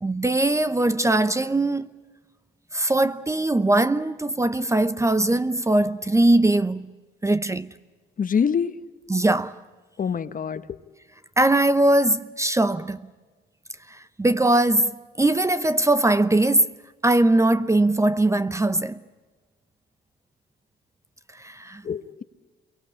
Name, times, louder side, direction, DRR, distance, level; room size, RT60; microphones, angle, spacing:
voice 1, 0.0-1.9 2.7-6.9 7.2-7.7 9.1-9.5 11.4-13.1 13.9-14.9 15.2-16.7 17.0-19.0 21.4-21.8, right 2 dB, 15° right, 0.7 m, -21 dB
voice 2, 8.2-8.7 10.0-10.6 21.8-22.2, left 7 dB, 45° left, 1.2 m, -25 dB
27.5 x 23.5 x 8.7 m
cardioid pair, 90°, 20 cm